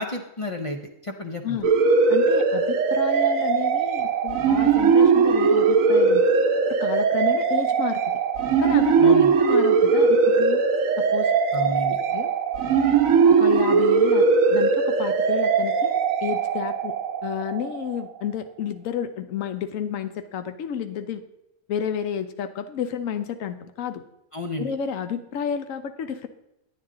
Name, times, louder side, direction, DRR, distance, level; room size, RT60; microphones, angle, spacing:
voice 1, 0.0-1.6 9.0-9.3 11.5-12.0 24.3-24.7, left 1 dB, 35° left, 3 dB, 0.5 m, -31 dB
sound 1, 1.6-18.0, right 5 dB, 80° right, 1.2 m, -20 dB
voice 2, 2.1-6.2 6.7-8.2 8.6-10.6 11.0-11.3 12.1-12.3 13.3-16.9 17.2-21.2 21.7-24.0 24.6-26.3, left 8 dB, 75° left, 9 dB, 1.1 m, -31 dB
9.5 x 9.3 x 3.7 m, 0.87 s
omnidirectional pair, 1.4 m